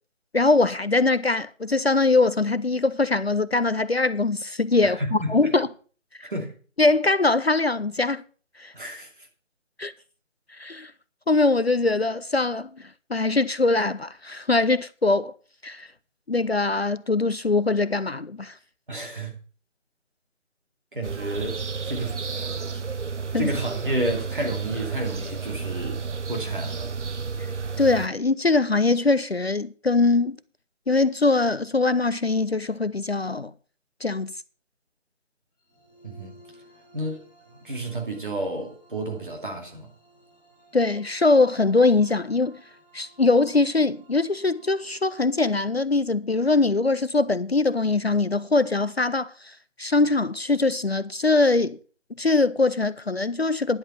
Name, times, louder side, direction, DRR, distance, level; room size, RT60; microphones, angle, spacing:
voice 1, 0.3-5.7 6.8-8.2 8.6-8.7 9.8-9.9 10.5-10.9 11.3-15.3 15.6-15.9 16.3-18.6 23.3-23.5 27.4-27.5 27.8-30.4 30.9-33.5 34.0-34.3 40.7-42.6 42.9-51.8 52.2-53.8, left 3 dB, 55° left, 0.5 m, -22 dB
voice 2, 4.8-5.5 6.2-6.5 8.7-9.3 18.9-19.4 20.9-22.2 23.3-26.0 26.3-26.9 36.0-36.4 36.9-37.2 37.5-39.9, right 1 dB, 40° right, 2.6 m, -31 dB
sound 1, 21.0-28.1, right 5 dB, 65° right, 0.9 m, -32 dB
sound 2, 35.6-45.4, right 1 dB, 15° right, 4.7 m, -56 dB
10.5 x 7.9 x 5.5 m
figure-of-eight pair, 175°, 38 cm